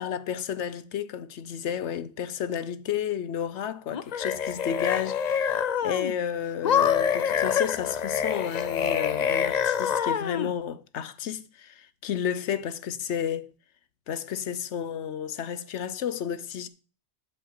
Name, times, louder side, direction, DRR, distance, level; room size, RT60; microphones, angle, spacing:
voice 1, 0.0-13.5 14.1-16.7, left 8 dB, 80° left, 1.0 m, -32 dB
sound 1, 3.9-6.1 6.6-10.5, left 8 dB, 50° left, 0.5 m, -26 dB
8.1 x 7.3 x 4.7 m
omnidirectional pair, 1.2 m